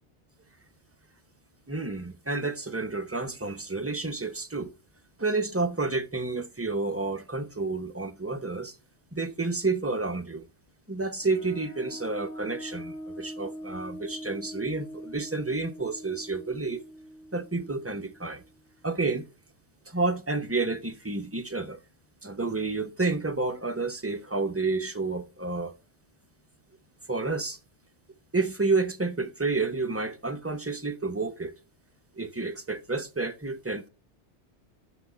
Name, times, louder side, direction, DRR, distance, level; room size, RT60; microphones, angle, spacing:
voice 1, 1.7-4.7 5.2-8.8 9.1-10.5 10.9-16.8 17.3-18.4 18.8-19.3 19.9-21.8 22.2-25.7 27.1-27.6 28.3-31.5 32.2-33.9, right 3 dB, 15° right, 0.7 m, -30 dB
sound 1, 11.2-18.6, equal, 80° left, 1.3 m, -42 dB
9.9 x 6.4 x 4.3 m
omnidirectional pair, 1.2 m